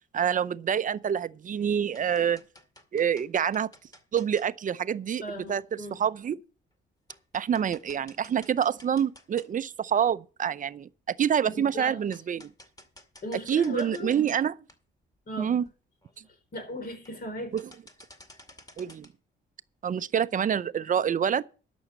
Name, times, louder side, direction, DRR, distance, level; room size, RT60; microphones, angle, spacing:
voice 1, 0.1-2.4 2.9-3.7 4.1-5.2 5.5-5.6 5.9-6.4 7.3-12.5 13.5-14.5 15.4-15.7 17.5-17.6 18.8-19.1 19.8-21.4, right 8 dB, 40° right, 0.5 m, -27 dB
sound 1, 1.0-1.4 1.7-4.5 5.6-5.7 6.2-6.3 6.7-6.8 7.1-9.8 10.2-10.3 11.5-11.6 12.1-14.4 14.7-14.8 15.3-15.4 15.6-15.7 16.0-16.3 16.9-17.3 17.6-19.1, left 1 dB, 20° left, 2.1 m, -53 dB
voice 2, 5.2-6.0 11.5-12.0 13.2-14.2 15.3-15.6 16.3-17.6, left 1 dB, 50° left, 4.0 m, -37 dB
12.0 x 6.2 x 7.3 m
cardioid pair, 90°, 20 cm